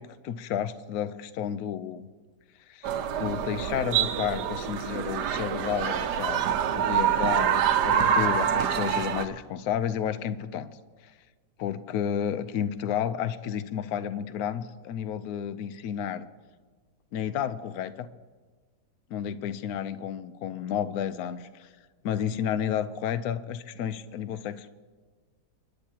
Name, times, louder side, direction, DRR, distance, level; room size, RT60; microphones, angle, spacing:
voice 1, 0.0-2.1 2.7-2.9 3.2-10.7 11.0-11.1 11.6-16.3 17.1-18.1 19.1-21.7 22.0-24.7, left 9 dB, 65° left, 13 dB, 1.0 m, -31 dB
sound 1, 2.8-9.2, right 8 dB, 75° right, 1.3 m, -26 dB
29.5 x 10.5 x 2.9 m, 1.4 s
omnidirectional pair, 1.9 m